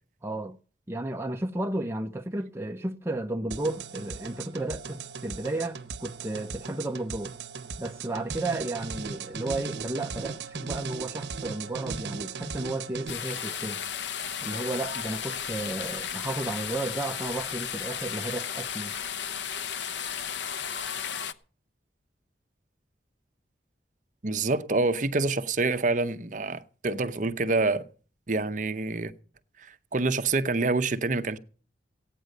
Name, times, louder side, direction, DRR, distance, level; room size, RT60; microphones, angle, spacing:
voice 1, 0.2-0.6 0.9-7.3 7.8-13.8 14.4-19.0, right 2 dB, 15° right, 0.6 m, -33 dB
sound 1, 3.5-13.1, right 5 dB, 70° right, 0.9 m, -37 dB
sound 2, 13.1-21.3, left 8 dB, 75° left, 0.9 m, -34 dB
voice 2, 24.2-27.9 28.3-29.1 29.6-31.4, right 3 dB, 45° right, 0.8 m, -27 dB
16.5 x 9.1 x 6.5 m
head